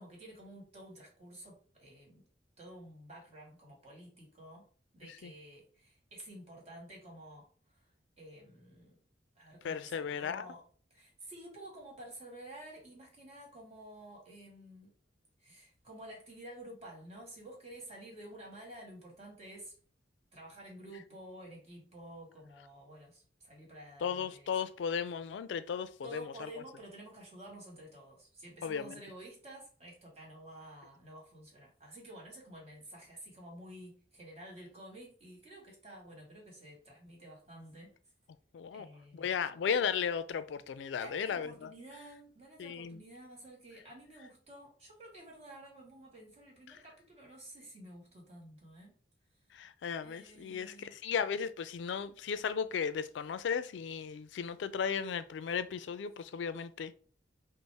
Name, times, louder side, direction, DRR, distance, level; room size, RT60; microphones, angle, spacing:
voice 1, 0.0-2.3 2.6-4.7 4.9-7.9 8.2-8.9 9.3-10.6 10.9-14.9 15.4-19.7 20.3-24.5 26.0-37.9 38.7-39.3 41.0-49.0 50.0-51.0, right 1 dB, 35° right, 1.6 m, -51 dB
voice 2, 9.6-10.4 24.0-26.2 28.6-29.0 38.5-38.9 39.1-41.7 42.6-43.0 49.5-56.9, left 7 dB, 75° left, 0.3 m, -35 dB
5.2 x 2.0 x 3.3 m
head